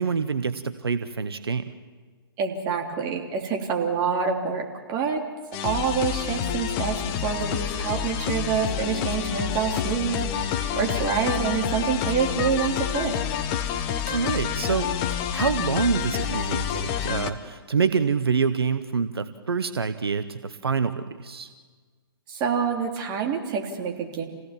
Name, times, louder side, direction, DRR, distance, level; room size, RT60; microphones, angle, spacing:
voice 1, 0.0-1.7 14.0-14.9 15.3-21.5, right 5 dB, 80° right, 11 dB, 1.0 m, -26 dB
voice 2, 2.4-5.2 5.6-13.2 14.1-14.2 22.3-24.2, right 6 dB, 30° right, 1 dB, 3.3 m, -27 dB
sound 1, 5.5-17.3, left 9 dB, 35° left, 1.5 m, -28 dB
28.0 x 17.0 x 7.4 m, 1.5 s
figure-of-eight pair, 125°, 13 cm